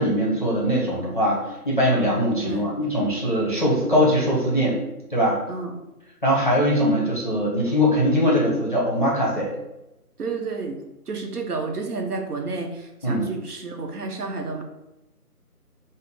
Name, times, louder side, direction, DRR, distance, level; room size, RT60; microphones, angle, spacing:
voice 1, 0.0-4.8 5.1-5.4 6.2-9.5 13.0-13.2, equal, 35° left, -4 dB, 0.7 m, -21 dB
voice 2, 10.2-14.6, right 4 dB, 75° right, 3 dB, 0.8 m, -31 dB
3.7 x 2.1 x 3.6 m, 0.92 s
figure-of-eight pair, 170°, 46 cm